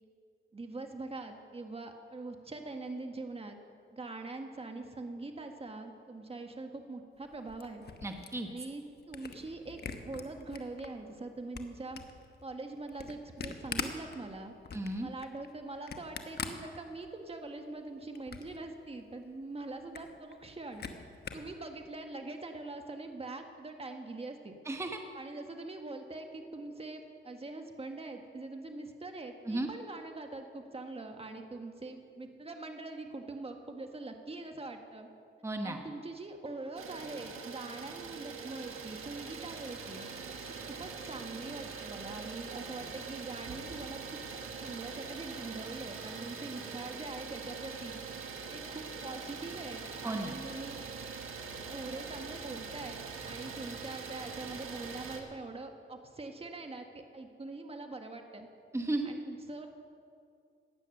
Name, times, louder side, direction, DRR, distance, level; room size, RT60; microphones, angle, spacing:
voice 1, 0.5-3.6 3.9-7.9 8.5-12.0 12.4-14.5 15.0-20.8 21.3-24.5 25.1-35.1 35.6-40.1 40.7-44.2 44.6-48.0 48.5-50.8 51.7-58.5 59.0-59.7, right 2 dB, 30° right, 4 dB, 1.6 m, -43 dB
Camera, 7.2-10.9 11.3-17.4 17.7-18.6 19.0-19.1 19.3-19.4 19.7-21.5, left 6 dB, 50° left, 1.1 m, -43 dB
voice 2, 8.0-8.5 14.7-15.1 24.7-25.0 29.5-29.7 35.4-35.8 50.0-50.3 58.7-59.2, right 2 dB, 15° right, 4 dB, 1.1 m, -34 dB
Idling, 36.8-55.2, right 5 dB, 80° right, 1.5 m, -43 dB
16.0 x 9.6 x 6.7 m, 2.4 s
cardioid pair, 85°, 21 cm